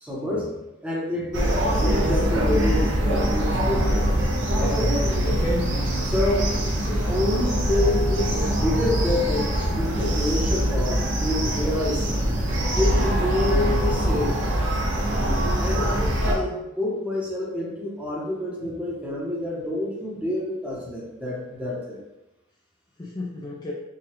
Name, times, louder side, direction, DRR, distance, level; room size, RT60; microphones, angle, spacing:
voice 1, 0.0-4.1 4.5-4.9 6.0-6.6 6.8-12.1 12.8-14.4 15.6-22.0, left 1 dB, 5° right, -5 dB, 0.8 m, -28 dB
sound 1, 1.3-16.3, equal, 65° right, 0.8 m, -23 dB
voice 2, 5.2-5.9 6.9-7.0 12.1-12.3 15.7-16.2 23.0-23.7, left 1 dB, 20° left, -4 dB, 0.4 m, -32 dB
4.8 x 2.3 x 3.0 m, 0.97 s
head